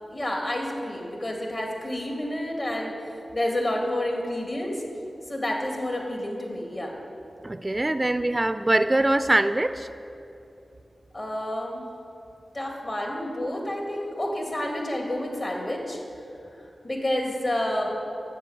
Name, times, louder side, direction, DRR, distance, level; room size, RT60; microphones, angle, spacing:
voice 1, 0.1-2.9 3.3-4.8 5.3-6.9 11.1-11.8 12.5-16.0 16.8-17.9, left 1 dB, 50° left, 0 dB, 2.1 m, -29 dB
voice 2, 7.4-9.9, right 1 dB, 30° right, 11 dB, 0.3 m, -23 dB
7.5 x 7.2 x 7.0 m, 2.8 s
cardioid pair, 45°, 0 cm